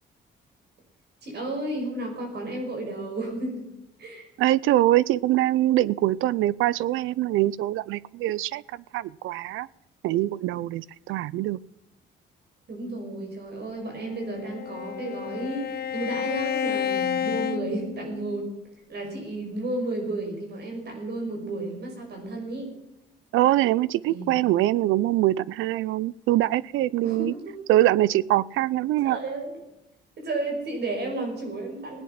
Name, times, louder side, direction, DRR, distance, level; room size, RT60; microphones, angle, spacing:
voice 1, 1.2-3.6 4.0-4.3 12.7-18.5 18.9-22.7 24.1-24.6 27.0-27.5 29.0-29.6 30.2-32.0, right 2 dB, 55° right, 2 dB, 5.6 m, -32 dB
voice 2, 4.4-8.6 8.9-9.7 10.0-11.6 23.3-27.3 27.7-29.2, right 15 dB, 90° right, 23 dB, 0.5 m, -23 dB
Bowed string instrument, 14.0-18.5, left 8 dB, 50° left, 0.8 m, -30 dB
17.0 x 10.0 x 5.8 m, 0.89 s
cardioid pair, 90°, 20 cm